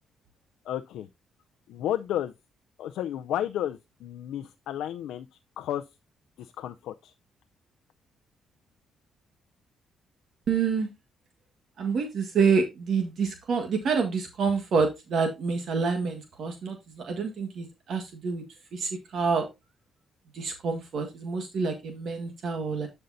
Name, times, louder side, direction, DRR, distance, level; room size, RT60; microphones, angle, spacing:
voice 1, 0.7-1.1 1.7-2.3 2.8-5.3 5.6-5.8 6.4-7.1, left 11 dB, 80° left, 0.5 m, -32 dB
voice 2, 10.5-10.9 11.8-18.4 18.7-19.5 20.3-22.9, right 5 dB, 65° right, 1.6 m, -27 dB
11.5 x 5.4 x 2.6 m
cardioid pair, 90°, 0 cm